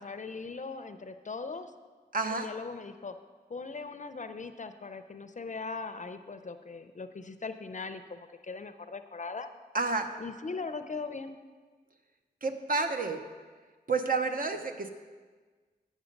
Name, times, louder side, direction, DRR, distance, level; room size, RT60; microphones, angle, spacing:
voice 1, 0.0-1.7 2.3-3.2 3.5-9.5 10.2-11.4, left 4 dB, 45° left, 9 dB, 0.5 m, -40 dB
voice 2, 2.1-2.5 9.7-10.1 12.4-13.2 13.9-14.9, right 3 dB, 55° right, 6 dB, 0.7 m, -30 dB
9.0 x 6.4 x 5.2 m, 1.4 s
wide cardioid pair, 85°, 17 cm